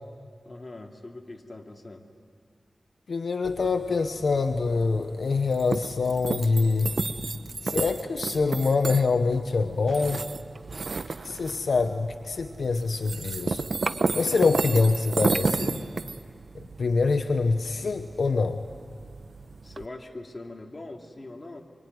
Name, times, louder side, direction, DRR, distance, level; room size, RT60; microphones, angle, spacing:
voice 1, 0.4-2.1 19.6-21.6, left 2 dB, 35° left, 2 dB, 2.8 m, -42 dB
voice 2, 3.1-6.9 7.6-10.2 11.2-13.6 14.1-15.8 16.5-18.6, left 4 dB, 85° left, 7 dB, 1.0 m, -25 dB
sound 1, 3.4-19.9, right 3 dB, 65° right, 1.0 m, -33 dB
25.0 x 24.5 x 9.6 m, 2.2 s
wide cardioid pair, 60°, 0 cm